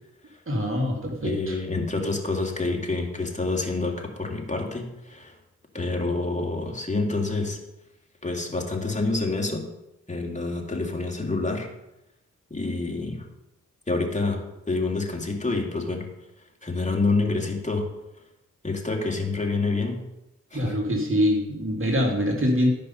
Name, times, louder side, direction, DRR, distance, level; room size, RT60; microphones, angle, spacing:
voice 1, 0.5-1.6 20.5-22.7, equal, 40° right, 1 dB, 2.2 m, -24 dB
voice 2, 1.2-5.3 5.7-7.6 8.2-9.7 10.1-11.7 12.5-13.3 13.9-16.1 16.6-17.9 18.6-20.0 20.5-20.8, left 3 dB, 20° left, 1 dB, 2.6 m, -27 dB
12.5 x 5.5 x 5.6 m, 0.92 s
supercardioid pair, 40°, 32 cm